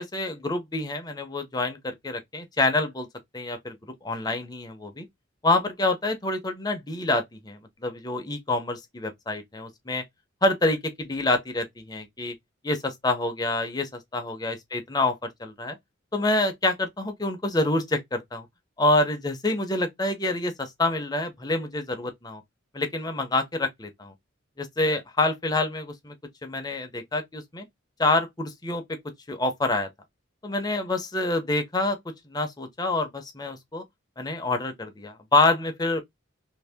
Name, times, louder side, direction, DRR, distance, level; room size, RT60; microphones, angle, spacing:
voice 1, 0.0-3.1 3.3-3.8 4.0-5.1 5.4-10.0 10.4-12.3 12.6-15.8 16.1-18.5 18.8-22.4 22.7-24.1 24.6-26.1 26.4-27.6 28.0-28.8 29.3-29.9 30.4-33.8 34.2-36.0, left 2 dB, 20° left, 0.7 m, -27 dB
2.9 x 2.8 x 3.4 m
head